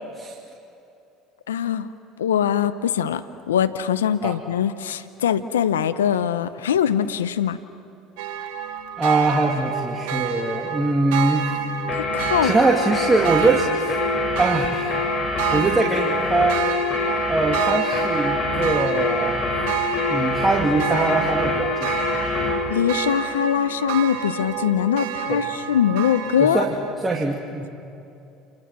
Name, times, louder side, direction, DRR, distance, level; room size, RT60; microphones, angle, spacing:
voice 1, 1.5-1.9 2.2-7.6 11.9-12.5 22.7-26.6, left 9 dB, 90° left, 11 dB, 0.7 m, -22 dB
sound 1, 8.2-26.9, right 9 dB, 75° right, 1.8 m, -29 dB
voice 2, 9.0-11.5 12.4-14.0 14.4-15.0 15.5-16.6 17.3-19.6 20.1-22.0 22.4-22.5 25.3-25.5 26.4-26.7 27.0-27.7, right 2 dB, 20° right, -1 dB, 2.7 m, -22 dB
sound 2, 11.9-22.6, left 3 dB, 45° left, 6.8 m, -25 dB
29.0 x 28.0 x 6.1 m, 2.7 s
hypercardioid pair, 75°, 0 cm